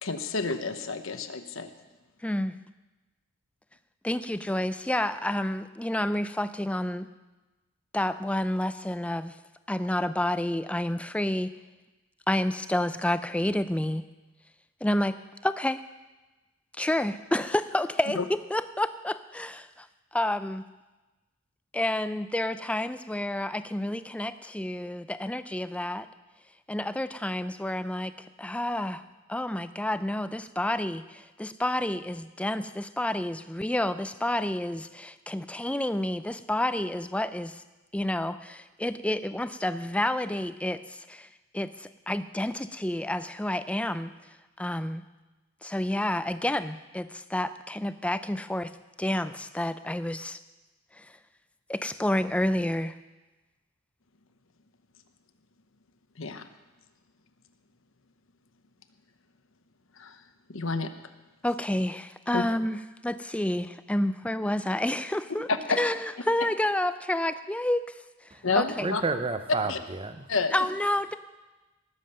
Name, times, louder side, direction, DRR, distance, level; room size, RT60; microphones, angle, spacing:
voice 1, 0.0-1.7 18.1-18.2 56.2-56.5 60.0-60.2 60.5-60.9 62.3-62.4 65.7-65.8 68.4-69.0 69.6-69.8 70.3-70.5, left 4 dB, 65° left, 9 dB, 1.0 m, -29 dB
voice 2, 2.2-2.6 4.0-7.1 7.9-9.4 9.7-11.5 12.3-14.1 14.8-15.2 15.4-15.8 16.8-19.9 20.1-20.6 21.7-26.1 26.7-29.0 29.3-37.6 37.9-41.3 41.5-44.1 44.6-45.0 45.6-48.7 49.0-50.4 51.0-51.1 51.7-52.9 61.4-62.8 63.0-68.0 68.6-68.9 70.5-71.2, left 1 dB, 5° left, 12 dB, 0.4 m, -29 dB
voice 3, 68.8-70.3, right 3 dB, 25° right, 10 dB, 0.7 m, -30 dB
19.5 x 7.4 x 6.7 m, 1.1 s
head